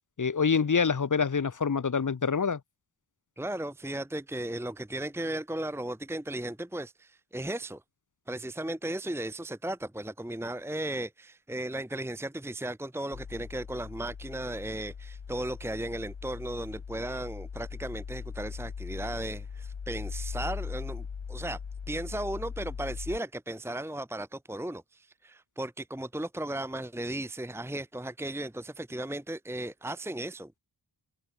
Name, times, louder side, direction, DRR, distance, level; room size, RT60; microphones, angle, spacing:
voice 1, 0.2-2.6, left 5 dB, 40° left, 1.0 m, -26 dB
voice 2, 3.4-7.8 8.3-21.6 21.9-30.5, right 1 dB, 5° right, 1.3 m, -36 dB
sound 1, 13.1-23.2, left 6 dB, 65° left, 2.5 m, -40 dB
wide cardioid pair, 80°, 49 cm